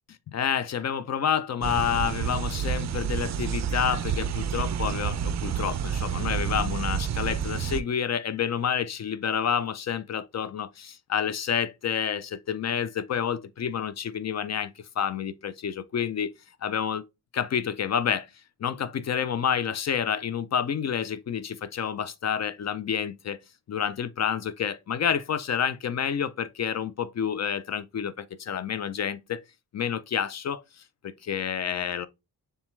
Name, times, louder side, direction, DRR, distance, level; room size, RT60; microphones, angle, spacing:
voice 1, 0.3-16.3 16.6-17.0 17.3-18.3 18.6-23.4 23.7-29.4 29.7-30.6 31.0-32.1, left 8 dB, 45° left, 0.5 m, -29 dB
sound 1, 1.6-7.8, right 8 dB, 45° right, 0.4 m, -29 dB
7.0 x 2.4 x 3.0 m
cardioid pair, 85°, 38 cm